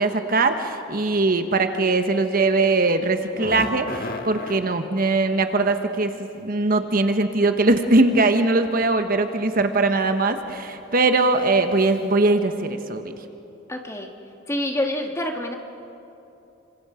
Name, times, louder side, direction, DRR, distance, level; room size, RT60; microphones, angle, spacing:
voice 1, 0.0-13.1, right 2 dB, 50° right, 8 dB, 1.2 m, -21 dB
sound 1, 3.2-4.6 6.8-6.9 7.9-8.3 8.6-8.8 9.6-9.9 10.3-10.4 10.8-10.9, left 2 dB, 50° left, 1.7 m, -34 dB
voice 2, 13.7-14.1 14.5-15.5, left 1 dB, 15° left, 3 dB, 1.8 m, -26 dB
28.0 x 25.5 x 5.1 m, 2.9 s
head